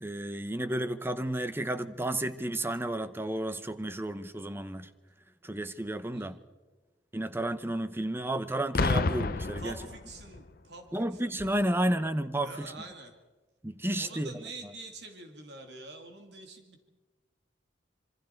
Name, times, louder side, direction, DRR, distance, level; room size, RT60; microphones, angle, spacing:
voice 1, 0.0-4.9 5.4-6.4 7.1-9.7 10.9-12.7 13.6-14.3, right 1 dB, 15° right, 0.9 m, -32 dB
voice 2, 6.1-6.4 9.6-11.9 12.4-13.1 14.0-16.8, right 2 dB, 70° right, 2.7 m, -46 dB
Boom, 8.7-10.5 11.4-11.6, left 3 dB, 55° left, 0.8 m, -30 dB
26.5 x 24.0 x 4.6 m
head